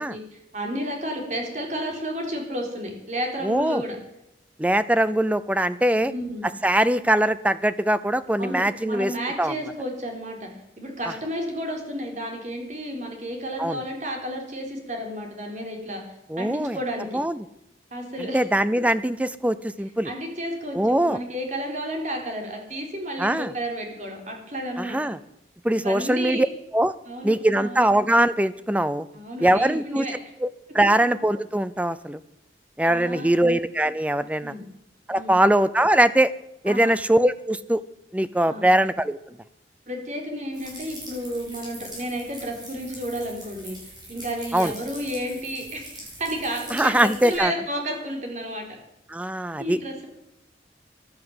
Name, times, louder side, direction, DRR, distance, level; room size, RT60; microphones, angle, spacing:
voice 1, 0.0-4.0 5.9-6.5 8.4-10.5 10.8-16.0 16.4-17.2 17.9-18.4 20.0-25.0 25.8-26.4 27.1-27.9 29.1-30.1 32.8-33.4 34.4-34.6 35.1-35.4 36.7-36.9 38.5-38.7 39.9-48.7 49.6-50.1, equal, 40° right, 2 dB, 3.7 m, -32 dB
voice 2, 3.4-3.8 4.6-6.1 6.6-9.1 9.4-9.5 13.6-13.8 16.3-16.8 17.1-17.4 18.2-20.1 20.7-21.2 23.2-23.5 24.8-25.2 25.6-26.5 26.7-26.9 27.2-29.1 29.4-30.1 30.4-30.5 30.7-32.2 32.8-34.5 35.1-36.3 36.6-37.8 38.1-39.4 44.5-44.7 46.7-47.5 49.1-49.8, right 1 dB, 10° right, 15 dB, 0.5 m, -22 dB
sound 1, 40.5-47.3, right 1 dB, 25° right, 6.3 m, -42 dB
15.0 x 11.0 x 7.8 m, 0.83 s
head